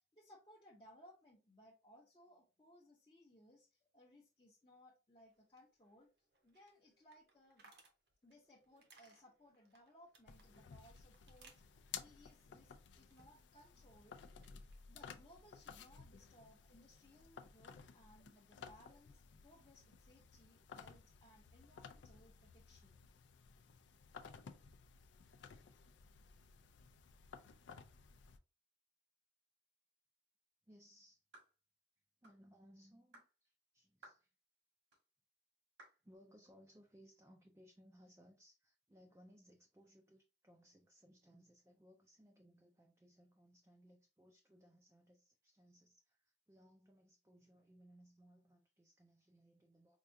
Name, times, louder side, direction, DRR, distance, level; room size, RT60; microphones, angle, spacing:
voice 1, 0.0-6.1 6.4-7.7 8.2-14.2 14.9-23.0, left 1 dB, 25° left, 0.6 m, -65 dB
sound 1, 5.2-13.7 14.0-14.8, right 3 dB, 70° right, 0.8 m, -69 dB
sound 2, 10.3-28.4, left 6 dB, 85° left, 0.4 m, -56 dB
voice 2, 30.6-31.2 32.2-34.4 36.0-50.0, equal, 15° right, 0.3 m, -65 dB
sound 3, 31.3-31.6 32.2-32.4 33.1-33.3 34.0-34.3 34.9-35.0 35.8-36.0, right 1 dB, 85° right, 1.7 m, -60 dB
4.5 x 2.3 x 2.6 m
head